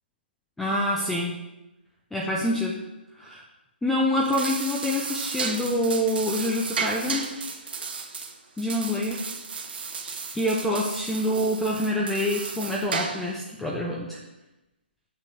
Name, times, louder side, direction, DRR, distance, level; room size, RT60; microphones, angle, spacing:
voice 1, 0.6-1.4 2.1-2.8 3.2-3.4 3.8-7.3 8.6-9.2 10.3-14.2, left 1 dB, 5° left, -2 dB, 0.4 m, -26 dB
sound 1, 4.1-13.4, right 5 dB, 60° right, 1.1 m, -34 dB
6.6 x 6.0 x 4.6 m, 0.98 s
hypercardioid pair, 160°, 6 cm